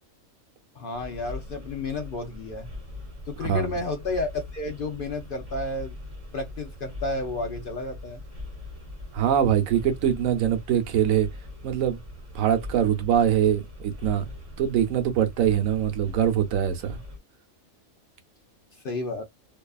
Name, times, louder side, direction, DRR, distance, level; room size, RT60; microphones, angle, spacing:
voice 1, 0.8-2.7 3.3-5.9 6.3-8.2 18.7-19.2, left 2 dB, 55° left, 0.6 m, -31 dB
sound 1, 0.9-17.2, left 2 dB, 30° right, 1.2 m, -41 dB
voice 2, 3.4-3.7 9.1-11.3 11.6-12.0 12.3-14.3 14.6-17.0, right 9 dB, 90° right, 1.0 m, -23 dB
2.7 x 2.3 x 2.2 m
omnidirectional pair, 1.4 m